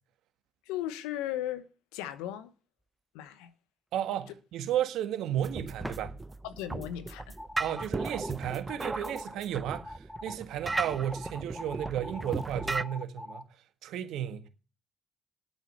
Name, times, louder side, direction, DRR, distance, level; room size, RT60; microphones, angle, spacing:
voice 1, 0.7-2.5 3.1-3.5 6.4-7.4, left 12 dB, 90° left, 1.0 m, -37 dB
sound 1, 2.8-2.9 5.8-8.4, right 1 dB, 5° right, 0.9 m, -47 dB
voice 2, 3.9-6.1 7.6-13.5 13.8-14.4, right 11 dB, 80° right, 1.6 m, -33 dB
sound 2, 5.4-12.8, right 3 dB, 25° right, 0.7 m, -36 dB
sound 3, 7.4-8.3 8.7-9.4 9.7-10.3 10.7-13.4, left 1 dB, 15° left, 2.4 m, -43 dB
10.5 x 8.9 x 7.2 m
supercardioid pair, 50°, 0 cm